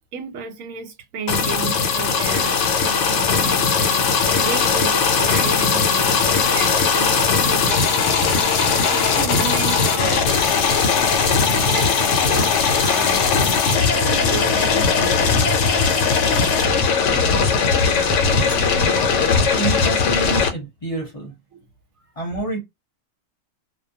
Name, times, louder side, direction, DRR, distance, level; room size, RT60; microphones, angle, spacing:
voice 1, 0.1-7.2 7.5-7.8 8.2-8.4 8.7-10.3 11.6-13.3 13.9-15.2 21.5-21.6, right 5 dB, 80° right, 1.1 m, -33 dB
sound 1, 1.3-20.5, left 5 dB, 70° left, 0.9 m, -19 dB
voice 2, 19.6-21.3 22.2-22.6, right 2 dB, 30° left, 0.7 m, -28 dB
2.4 x 2.2 x 2.6 m
omnidirectional pair, 1.4 m